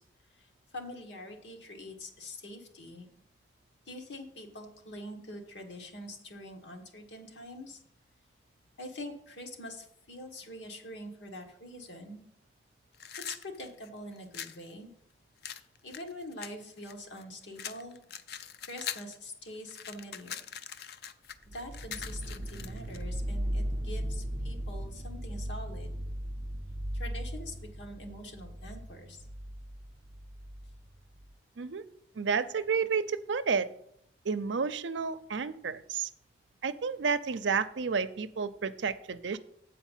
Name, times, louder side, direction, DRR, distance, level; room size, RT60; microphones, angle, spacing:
voice 1, 0.7-3.1 3.9-7.8 8.8-12.2 13.2-14.9 15.8-18.0 18.7-20.4 21.5-25.9 26.9-29.2, left 1 dB, 80° left, 2 dB, 1.5 m, -44 dB
sound 1, 12.9-14.6 15.4-17.2 17.6-19.2 19.5-23.0, left 8 dB, 60° left, 0.5 m, -42 dB
sound 2, 21.4-31.3, equal, 35° right, 0.5 m, -37 dB
voice 2, 32.2-33.7 34.2-36.1 36.6-39.4, right 5 dB, 90° right, 12 dB, 0.5 m, -31 dB
8.1 x 4.6 x 7.3 m, 0.70 s
head